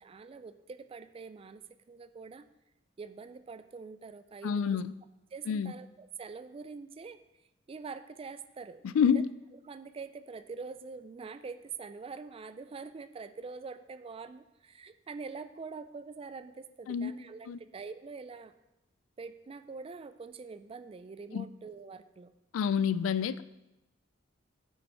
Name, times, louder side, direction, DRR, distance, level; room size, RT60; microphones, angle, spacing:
voice 1, 0.0-2.5 3.0-4.8 5.3-7.2 7.7-9.2 9.7-18.5 19.2-22.3, right 4 dB, 30° right, 12 dB, 0.3 m, -45 dB
voice 2, 4.4-4.9 5.5-5.7 8.8-9.3 16.9-17.1 17.5-17.6 21.3-21.5 22.5-23.4, left 7 dB, 85° left, 16 dB, 0.3 m, -28 dB
8.6 x 5.5 x 4.2 m, 0.96 s
head